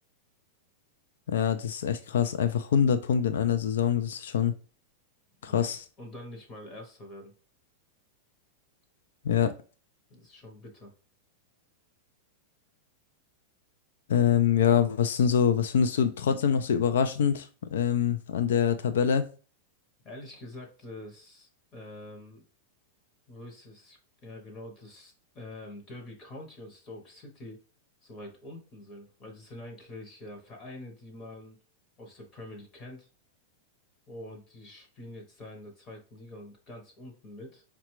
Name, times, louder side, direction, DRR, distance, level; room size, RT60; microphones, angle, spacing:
voice 1, 1.3-4.5 5.4-5.8 9.2-9.5 14.1-19.3, left 8 dB, 85° left, 0.4 m, -25 dB
voice 2, 6.0-7.3 10.1-10.9 20.0-22.4 23.3-27.6 28.0-31.6 32.0-33.1 34.1-37.6, left 1 dB, 20° left, 0.8 m, -45 dB
4.8 x 2.2 x 3.0 m
supercardioid pair, 170°, 0 cm